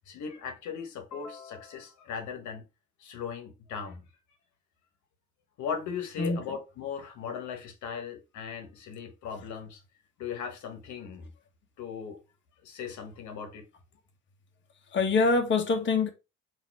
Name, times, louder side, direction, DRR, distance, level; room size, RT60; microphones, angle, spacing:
voice 1, 0.1-2.7 3.0-4.0 5.6-9.8 10.2-11.3 11.8-12.2 12.6-13.7, left 6 dB, 70° left, 1.2 m, -38 dB
voice 2, 14.9-16.1, left 4 dB, 40° left, 1.1 m, -24 dB
3.9 x 2.7 x 4.6 m
supercardioid pair, 65°, 30 cm